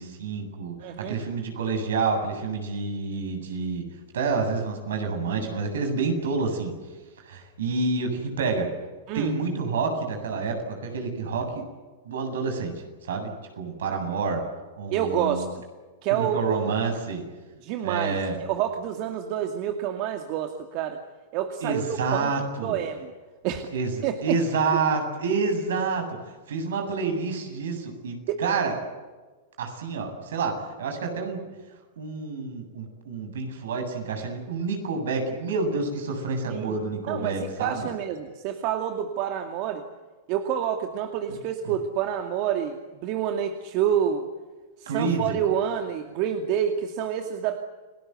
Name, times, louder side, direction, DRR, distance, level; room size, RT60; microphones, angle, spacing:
voice 1, 0.0-3.8 4.1-6.7 7.3-8.7 9.1-11.6 12.0-13.3 13.6-14.4 14.8-15.5 16.1-17.2 17.8-18.4 21.6-22.8 23.7-23.9 24.2-26.2 26.5-28.8 29.6-31.4 32.0-37.9 41.3-41.4 44.9-45.4, right 4 dB, 75° right, 5 dB, 8.0 m, -28 dB
voice 2, 0.8-1.2 5.3-5.5 9.1-9.3 14.9-15.5 16.0-16.7 17.6-21.0 21.3-21.8 22.1-22.3 22.6-23.1 23.4-23.7 24.0-24.4 28.3-28.4 36.5-36.8 37.1-39.8 40.3-44.3 44.8-47.6, right 9 dB, 50° right, 5 dB, 2.4 m, -28 dB
30.0 x 19.5 x 8.2 m, 1.3 s
hypercardioid pair, 105°, 0 cm